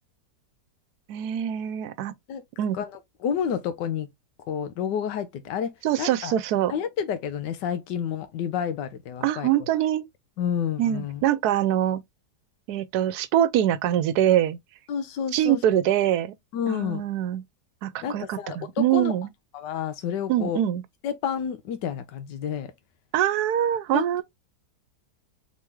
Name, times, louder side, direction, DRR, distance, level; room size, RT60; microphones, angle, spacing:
voice 1, 1.1-2.2 2.6-2.8 5.8-6.7 9.2-10.1 10.8-12.0 12.7-14.6 15.3-16.3 16.7-17.4 17.8-19.3 20.3-20.8 23.1-24.2, right 11 dB, 75° right, 1.1 m, -24 dB
voice 2, 2.7-4.1 4.5-6.3 6.7-9.5 10.4-11.2 14.9-15.6 16.5-17.0 18.0-19.1 19.5-20.6 21.0-22.7 23.9-24.2, left 8 dB, 85° left, 1.4 m, -30 dB
4.2 x 3.2 x 3.5 m
omnidirectional pair, 1.8 m